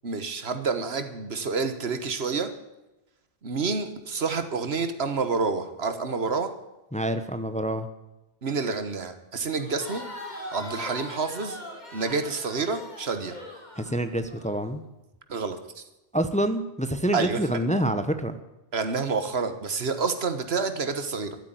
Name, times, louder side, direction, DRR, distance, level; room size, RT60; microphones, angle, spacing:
voice 1, 0.0-2.5 3.4-6.5 8.4-10.0 10.5-11.6 11.9-13.3 15.3-15.8 17.1-17.4 18.7-21.4, right 4 dB, 75° right, 9 dB, 1.6 m, -28 dB
voice 2, 6.9-7.9 13.8-14.8 16.1-18.4, right 1 dB, 5° left, 9 dB, 0.9 m, -27 dB
Crowd, 9.6-14.5, left 1 dB, 45° left, 2.7 m, -41 dB
13.5 x 8.4 x 9.2 m, 0.98 s
omnidirectional pair, 1.1 m